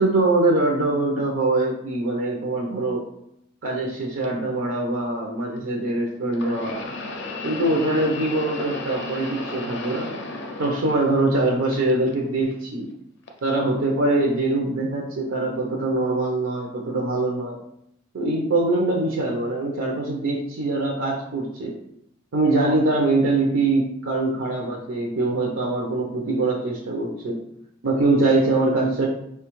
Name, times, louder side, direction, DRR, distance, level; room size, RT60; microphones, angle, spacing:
voice 1, 0.0-3.0 3.6-6.8 7.4-10.1 10.6-12.9 13.4-17.6 18.1-21.7 22.3-27.4 27.8-29.1, right 2 dB, 85° right, -1 dB, 0.5 m, -23 dB
sound 1, 4.2-4.3 6.3-11.4 11.7-12.5 13.3-13.4 14.4-14.5, left 2 dB, 60° left, 0.4 m, -34 dB
4.2 x 2.2 x 3.0 m, 0.76 s
head